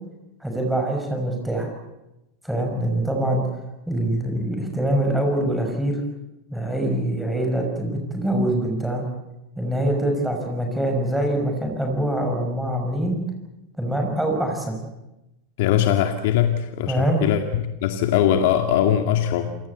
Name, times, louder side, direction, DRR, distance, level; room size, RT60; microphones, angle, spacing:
voice 1, 0.4-1.7 2.4-3.4 3.9-6.0 6.5-9.1 9.6-13.2 13.8-14.7 16.9-17.2, right 1 dB, ahead, 2 dB, 6.2 m, -24 dB
voice 2, 15.6-19.5, left 10 dB, 65° left, 6 dB, 2.1 m, -21 dB
28.0 x 18.0 x 8.3 m, 0.95 s
hypercardioid pair, 110°, 0 cm